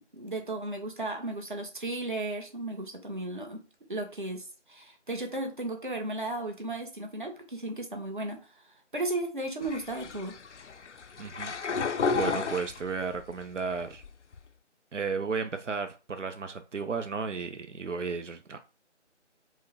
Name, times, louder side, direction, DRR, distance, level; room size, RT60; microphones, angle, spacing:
voice 1, 0.1-3.6 3.9-10.3, right 2 dB, 45° right, 3 dB, 0.9 m, -35 dB
sound 1, 9.6-13.3 13.7-14.4, left 5 dB, 75° left, 0.5 m, -32 dB
voice 2, 11.2-11.5 11.9-14.0 14.9-18.6, right 5 dB, 85° right, 8 dB, 0.6 m, -34 dB
4.7 x 2.1 x 4.1 m, 0.33 s
figure-of-eight pair, 165°, 36 cm